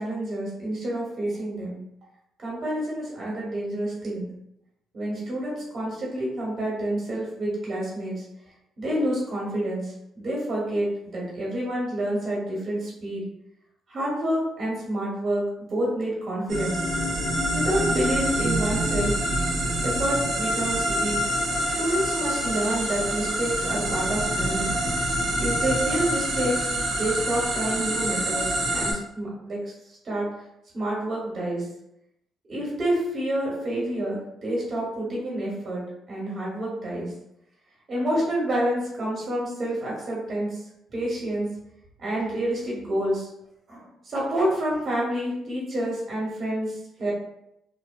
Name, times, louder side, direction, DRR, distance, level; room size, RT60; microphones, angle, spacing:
voice 1, 0.0-1.8 2.4-4.3 4.9-8.2 8.8-13.2 13.9-16.8 17.5-19.2 19.8-21.2 21.7-24.7 25.4-29.6 29.9-30.3 30.7-31.7 32.5-37.1 37.9-40.6 40.9-41.5 42.0-43.3 43.7-47.1, right 1 dB, 50° right, -5 dB, 1.0 m, -28 dB
sound 1, 16.5-28.9, right 1 dB, 80° right, 0.7 m, -26 dB
2.6 x 2.2 x 2.3 m, 0.79 s
cardioid pair, 85°, 0 cm